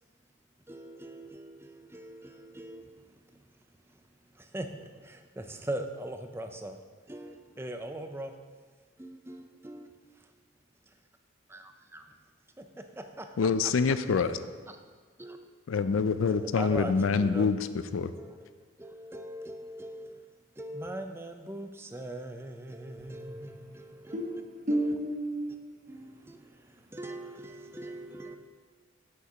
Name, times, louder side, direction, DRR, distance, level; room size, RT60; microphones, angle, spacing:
voice 1, 0.7-3.4 4.3-4.7 5.0-6.8 7.1-8.3 9.0-9.9 11.5-11.6 11.9-12.1 12.6-13.4 13.6-14.0 15.2-15.4 16.3-17.5 18.1-18.5 18.8-20.1 20.6-24.4 24.7-24.9 25.9-28.4, right 1 dB, 10° right, 6 dB, 0.5 m, -41 dB
voice 2, 13.4-14.4 15.7-17.7 17.9-18.1, left 5 dB, 80° left, 13 dB, 0.4 m, -26 dB
voice 3, 24.1-26.2, right 1 dB, 35° right, 2 dB, 1.0 m, -32 dB
8.0 x 6.5 x 5.0 m, 1.5 s
head